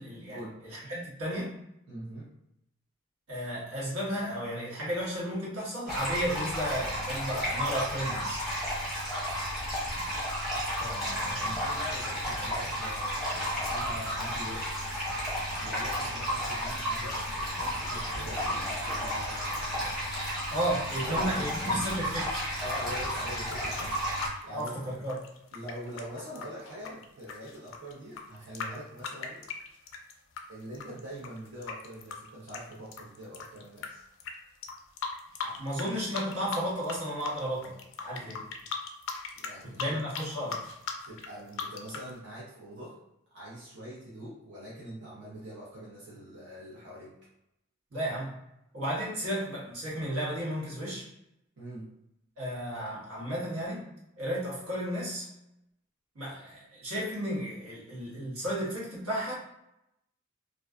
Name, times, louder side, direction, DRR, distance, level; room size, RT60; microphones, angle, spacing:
voice 1, 0.0-0.4 0.6-1.5 3.3-8.4 10.8-11.6 20.5-22.3 24.5-25.2 35.4-38.4 39.6-40.6 47.9-48.3 48.7-51.1 52.4-53.9 54.2-55.3 56.1-59.3, equal, 80° right, -6 dB, 1.2 m, -33 dB
voice 2, 1.9-2.3 11.0-14.8 15.6-18.6 18.9-20.1 21.0-21.9 22.6-24.0 24.4-24.8 25.5-29.5 30.5-34.0 39.3-40.0 41.1-43.0 43.3-47.3 51.6-51.9, equal, 55° right, -8 dB, 0.6 m, -43 dB
sound 1, 5.9-24.3, equal, 5° right, 0.8 m, -32 dB
sound 2, 23.3-30.4 30.7-33.9 34.2-34.3 34.6-35.9 36.1-37.0 37.2-42.1, left 6 dB, 60° left, 0.3 m, -38 dB
2.4 x 2.3 x 2.3 m, 0.83 s
head